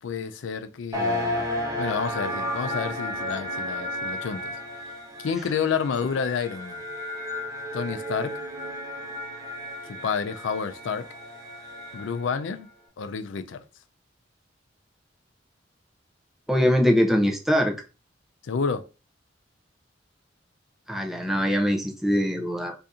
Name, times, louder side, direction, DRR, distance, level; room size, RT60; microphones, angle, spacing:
voice 1, 0.0-1.5 1.7-4.5 5.2-6.8 7.7-8.4 9.9-11.1 11.9-12.7 13.0-13.6 18.4-18.8, left 6 dB, 80° left, 0.4 m, -29 dB
sound 1, 0.9-12.3, left 1 dB, 20° right, 1.0 m, -33 dB
voice 2, 16.5-17.7 20.9-22.7, equal, ahead, 0.6 m, -22 dB
2.7 x 2.6 x 3.5 m
head